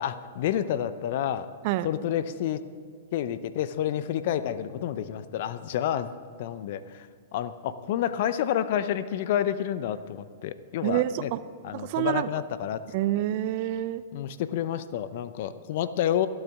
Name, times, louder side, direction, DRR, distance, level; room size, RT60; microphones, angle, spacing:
voice 1, 0.0-1.5 1.8-2.6 3.1-6.1 6.4-7.1 7.3-11.3 11.6-12.8 14.1-16.3, left 10 dB, 55° left, 14 dB, 0.7 m, -29 dB
voice 2, 10.8-11.4 11.7-12.3 12.9-14.0, right 14 dB, 50° right, 14 dB, 0.5 m, -27 dB
25.0 x 8.8 x 3.6 m, 2.1 s
hypercardioid pair, 110°, 0 cm